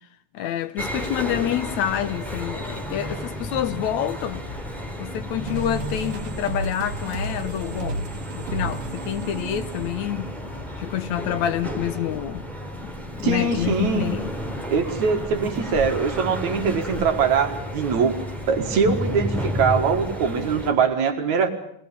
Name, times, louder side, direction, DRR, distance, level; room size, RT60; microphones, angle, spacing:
voice 1, 0.3-4.5 5.0-10.3 10.8-12.5 12.8-14.4, left 10 dB, 70° left, 2.3 m, -28 dB
sound 1, 0.8-20.7, equal, ahead, 3.2 m, -32 dB
sound 2, 5.5-10.8, right 3 dB, 90° right, 2.7 m, -34 dB
voice 2, 13.2-14.1 14.7-18.1 18.5-21.5, right 5 dB, 70° right, 3.0 m, -22 dB
23.0 x 19.0 x 8.5 m
omnidirectional pair, 3.4 m